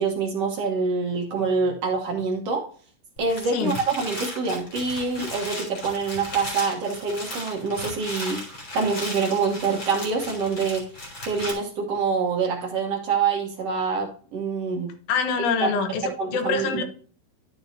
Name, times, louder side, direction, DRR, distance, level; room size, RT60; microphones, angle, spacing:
voice 1, 0.0-2.6 3.2-8.4 8.7-10.8 11.3-14.9 15.6-15.7 16.2-16.8, right 4 dB, 80° right, 1 dB, 1.4 m, -26 dB
sound 1, 3.2-11.5, left 1 dB, 30° left, 3.5 m, -36 dB
voice 2, 15.1-16.0 16.3-16.8, left 5 dB, 70° left, 8 dB, 2.6 m, -24 dB
11.5 x 6.9 x 2.7 m, 0.44 s
omnidirectional pair, 4.7 m